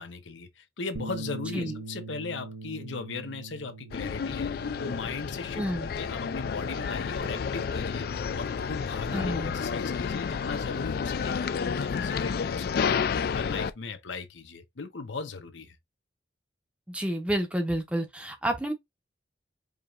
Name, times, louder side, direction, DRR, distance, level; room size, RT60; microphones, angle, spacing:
voice 1, 0.0-15.8, left 4 dB, 85° left, 0.7 m, -38 dB
Bass guitar, 0.9-7.2, right 3 dB, 70° right, 0.6 m, -43 dB
sound 1, 3.9-13.7, left 6 dB, 55° left, 0.3 m, -30 dB
voice 2, 5.6-5.9 9.1-9.6 16.9-18.7, right 1 dB, 5° right, 0.6 m, -29 dB
4.8 x 2.8 x 2.4 m
head